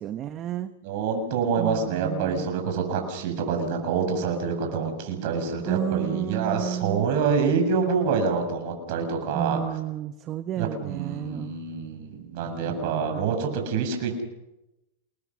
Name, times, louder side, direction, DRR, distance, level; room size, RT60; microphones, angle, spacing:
voice 1, 0.0-0.7 1.6-2.5 5.6-7.1 9.3-11.5 12.4-13.3, right 11 dB, 30° right, 10 dB, 1.1 m, -32 dB
voice 2, 0.8-9.6 10.6-14.2, right 5 dB, 55° right, 4 dB, 7.2 m, -26 dB
28.5 x 21.0 x 6.4 m, 0.96 s
hypercardioid pair, 130°, 0 cm